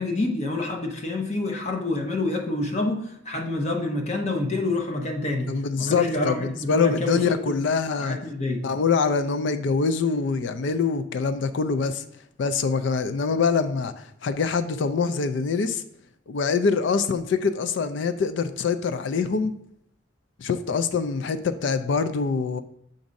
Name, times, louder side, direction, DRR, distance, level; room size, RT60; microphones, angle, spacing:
voice 1, 0.0-5.5 5.8-7.6 8.0-8.6, left 2 dB, 35° left, 2 dB, 0.8 m, -27 dB
voice 2, 5.5-8.2 8.6-12.0 12.4-15.8 16.3-19.5 20.4-22.6, left 5 dB, 70° left, 11 dB, 0.4 m, -24 dB
7.0 x 2.6 x 5.1 m, 0.71 s
head